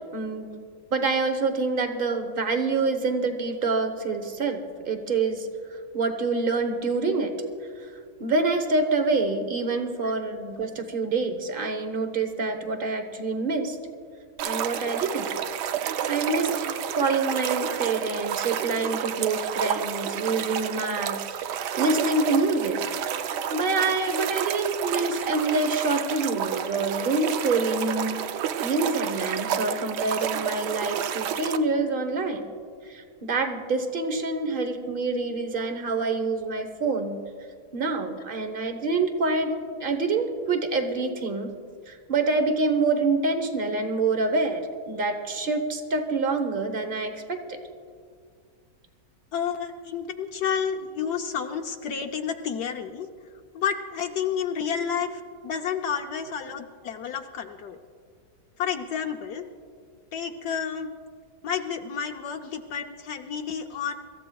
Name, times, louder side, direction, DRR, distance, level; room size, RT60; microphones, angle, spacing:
voice 1, 0.1-0.6 0.9-5.5 5.9-7.3 7.8-7.9 8.2-13.8 14.4-15.3 16.1-22.8 23.5-28.3 28.6-32.5 32.8-37.2 37.7-39.5 39.8-41.5 41.9-47.6, right 3 dB, 35° right, 6 dB, 1.0 m, -26 dB
sound 1, 14.4-31.6, right 9 dB, 75° right, 1.2 m, -30 dB
voice 2, 49.3-53.1 53.5-57.8 58.6-59.5 60.1-60.9 61.4-63.9, left 7 dB, 70° left, 4 dB, 1.1 m, -30 dB
25.5 x 14.5 x 2.3 m, 2.1 s
omnidirectional pair, 1.9 m